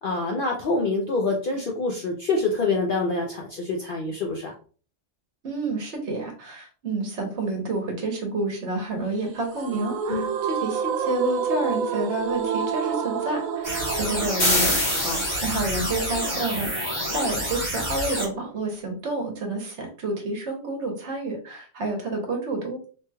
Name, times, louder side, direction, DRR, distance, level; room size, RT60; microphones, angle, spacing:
voice 1, 0.0-4.5 10.1-10.3 15.0-15.2, left 3 dB, 65° left, 1 dB, 0.5 m, -26 dB
voice 2, 5.4-22.8, right 2 dB, 60° right, 3 dB, 1.1 m, -29 dB
sound 1, 9.5-16.6, right 6 dB, 90° right, 1.0 m, -29 dB
sound 2, 13.6-18.2, equal, 20° right, 1.2 m, -29 dB
sound 3, 14.4-15.9, left 1 dB, 45° left, 1.5 m, -25 dB
3.0 x 2.9 x 2.2 m, 0.40 s
omnidirectional pair, 1.4 m